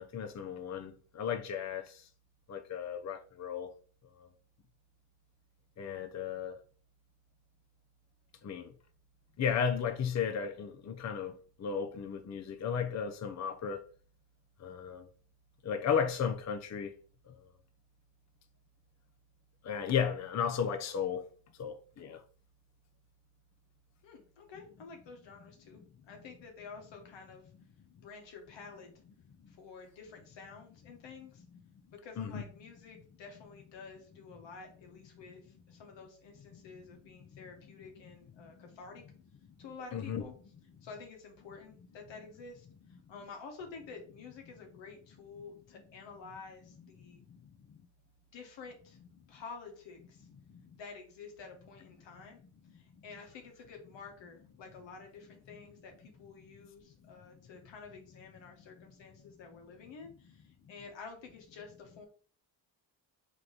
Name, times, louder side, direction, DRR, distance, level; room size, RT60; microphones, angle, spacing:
voice 1, 0.0-1.9 2.5-3.7 5.8-6.6 8.4-8.6 9.4-11.3 11.6-13.8 14.6-15.0 15.6-16.9 19.7-21.2 21.6-22.2 32.2-32.4 39.9-40.2, left 7 dB, 40° left, 0.6 m, -34 dB
voice 2, 24.0-25.8 26.1-27.5 28.0-28.9 29.5-31.4 31.9-39.0 39.6-40.3 40.8-42.7 43.1-47.2 48.3-49.0 49.3-50.3 50.8-52.4 52.7-62.1, left 5 dB, 85° left, 1.3 m, -50 dB
3.4 x 3.1 x 3.9 m
cardioid pair, 80°, 43 cm